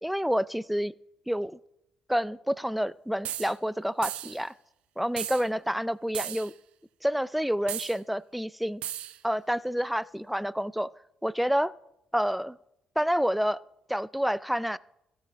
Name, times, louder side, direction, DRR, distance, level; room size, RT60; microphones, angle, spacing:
voice 1, 0.0-0.9 1.3-1.6 2.1-4.5 5.0-6.5 7.0-8.8 9.2-10.9 11.2-11.7 12.1-12.6 13.0-13.6 13.9-14.8, equal, ahead, 20 dB, 0.4 m, -28 dB
sound 1, 3.2-3.5 4.0-4.4 5.2-5.5 6.1-6.5 7.7-8.0 8.8-9.2, right 11 dB, 70° right, 0.5 m, -35 dB
15.0 x 8.8 x 3.5 m, 0.85 s
hypercardioid pair, 45°, 2 cm